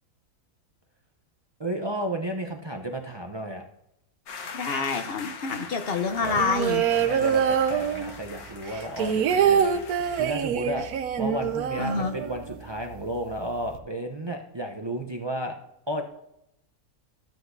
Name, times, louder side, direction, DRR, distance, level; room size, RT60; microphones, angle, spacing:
voice 1, 1.6-3.6 6.9-10.9 11.2-15.5 15.9-16.0, right 1 dB, 30° right, 2 dB, 0.4 m, -33 dB
sound 1, 4.3-10.4, left 5 dB, 85° left, 1.5 m, -42 dB
voice 2, 4.5-6.8 11.8-12.1, left 4 dB, 50° left, 7 dB, 0.8 m, -27 dB
sound 2, 6.2-8.4 8.7-12.6 12.9-13.0 13.3-13.8, right 8 dB, 85° right, 1.2 m, -25 dB
12.0 x 7.9 x 2.6 m, 0.81 s
omnidirectional pair, 1.5 m